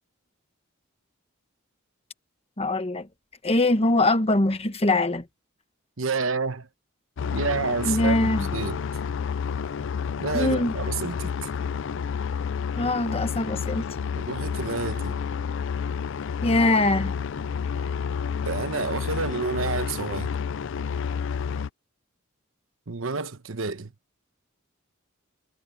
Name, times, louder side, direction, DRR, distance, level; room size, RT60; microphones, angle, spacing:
voice 1, 2.6-3.1 3.4-5.2 7.8-8.4 10.3-10.7 12.8-13.8 16.4-17.2, left 2 dB, 30° left, 1.2 m, -22 dB
voice 2, 6.0-6.7 7.3-8.8 10.2-11.3 14.1-15.2 18.4-20.3 22.9-23.9, right 4 dB, 70° right, 1.1 m, -29 dB
sound 1, 7.2-21.7, left 6 dB, 60° left, 0.4 m, -30 dB
head